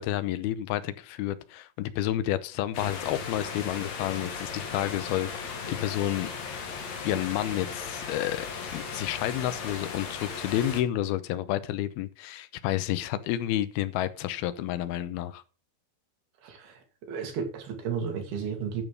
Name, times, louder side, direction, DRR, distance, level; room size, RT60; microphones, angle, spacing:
voice 1, 0.0-6.3 7.0-8.5 8.7-15.4, left 13 dB, 85° left, 2.7 m, -30 dB
sound 1, 2.7-10.8, left 5 dB, 50° left, 2.7 m, -37 dB
voice 2, 16.4-18.8, right 6 dB, 75° right, 4.1 m, -33 dB
12.5 x 6.2 x 5.3 m
omnidirectional pair, 4.4 m